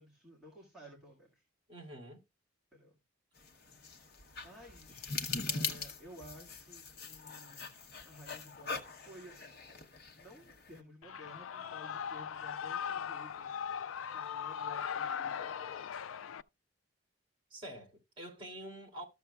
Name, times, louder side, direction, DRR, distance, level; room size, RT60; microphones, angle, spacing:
voice 1, 0.0-1.4 2.7-3.0 4.4-5.2 5.5-7.7 8.0-9.6 10.2-13.7 14.1-15.8, equal, ahead, 2.1 m, -55 dB
voice 2, 1.7-2.2 17.5-19.0, right 1 dB, 25° right, 2.7 m, -47 dB
sound 1, 3.4-10.8, left 4 dB, 50° left, 0.9 m, -42 dB
Shout / Cheering, 11.0-16.4, left 8 dB, 85° left, 0.4 m, -39 dB
13.5 x 6.9 x 2.3 m
head